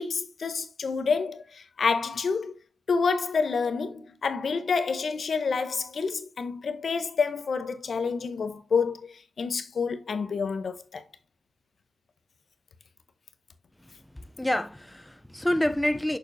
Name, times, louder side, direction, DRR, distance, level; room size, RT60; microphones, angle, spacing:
voice 1, 0.0-2.5 2.9-11.0, left 5 dB, 70° left, 0.8 m, -28 dB
voice 2, 13.9-16.2, left 1 dB, 10° left, 0.5 m, -28 dB
6.6 x 6.4 x 2.6 m
wide cardioid pair, 90°, 0 cm